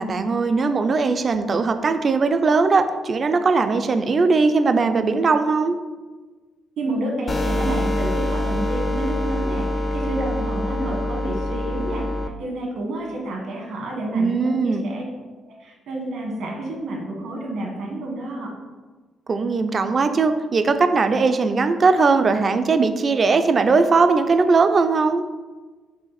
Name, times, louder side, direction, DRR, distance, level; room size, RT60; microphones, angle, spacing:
voice 1, 0.0-5.8 14.1-14.9 19.3-25.2, right 4 dB, 40° right, 9 dB, 0.3 m, -19 dB
voice 2, 6.8-12.0 12.4-15.0 15.4-18.5, right 1 dB, 75° right, -1 dB, 1.3 m, -29 dB
sound 1, 7.3-12.3, left 1 dB, 30° left, 0.4 m, -25 dB
4.8 x 2.5 x 4.1 m, 1.3 s
cardioid pair, 90°, 0 cm